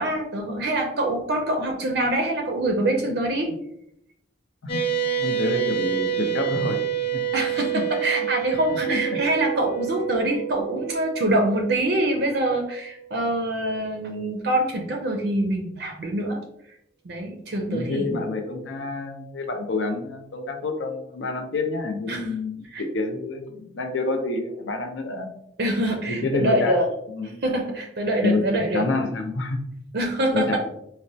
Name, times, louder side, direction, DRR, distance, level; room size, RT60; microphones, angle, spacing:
voice 1, 0.0-3.5 7.3-16.4 17.0-18.2 22.1-22.3 22.7-22.8 25.6-26.9 27.2-28.8 29.9-30.6, right 1 dB, 55° right, 3 dB, 0.4 m, -25 dB
sound 1, 4.7-13.4, right 9 dB, 30° left, 0.5 m, -28 dB
voice 2, 5.2-6.8 7.1-7.2 7.7-7.8 8.9-9.2 17.7-25.3 26.1-26.8 27.2-27.4 28.2-29.6 30.3-30.6, left 2 dB, 80° left, 4 dB, 0.6 m, -28 dB
4.0 x 2.1 x 2.6 m, 0.75 s
head